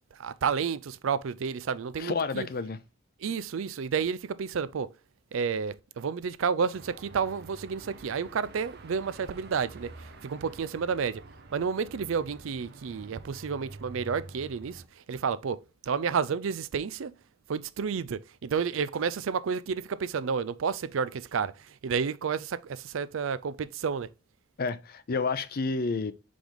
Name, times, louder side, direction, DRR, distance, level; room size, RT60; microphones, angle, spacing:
voice 1, 0.1-2.5 3.2-4.9 5.3-11.2 11.5-17.1 17.5-24.1, right 6 dB, 70° right, 0.4 m, -31 dB
voice 2, 2.0-2.8 24.6-26.1, left 4 dB, 50° left, 0.5 m, -30 dB
Car passing by / Traffic noise roadway noise / Engine, 6.7-14.9, right 3 dB, 55° right, 0.9 m, -48 dB
5.1 x 5.0 x 3.8 m
head